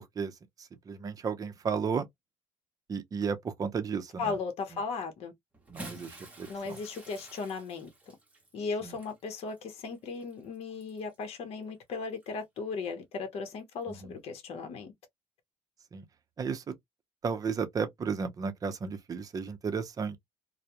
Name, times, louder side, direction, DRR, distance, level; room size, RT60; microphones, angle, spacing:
voice 1, 0.0-2.1 2.9-4.4 5.7-6.8 8.8-9.0 14.0-14.2 15.9-16.1 16.4-16.8 17.2-20.2, right 5 dB, 30° right, 0.6 m, -34 dB
voice 2, 4.2-5.3 6.5-7.9 8.5-14.9, left 4 dB, 60° left, 0.8 m, -36 dB
Bathtub (filling or washing) / Splash splatter, 5.5-11.2 12.1-12.3 13.7-13.8, right 1 dB, 10° right, 0.9 m, -50 dB
2.2 x 2.0 x 2.8 m
cardioid pair, 115°, 12 cm